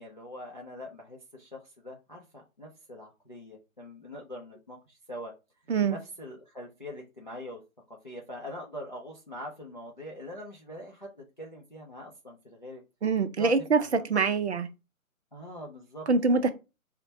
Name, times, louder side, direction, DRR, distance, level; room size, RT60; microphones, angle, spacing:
voice 1, 0.0-5.3 5.9-7.6 7.9-12.8 13.4-14.2 15.3-16.5, left 1 dB, 35° left, 0.4 m, -43 dB
voice 2, 13.0-13.8 14.1-14.7 16.1-16.5, right 4 dB, 50° right, 0.5 m, -24 dB
4.2 x 2.1 x 2.6 m
hypercardioid pair, 170°, 43 cm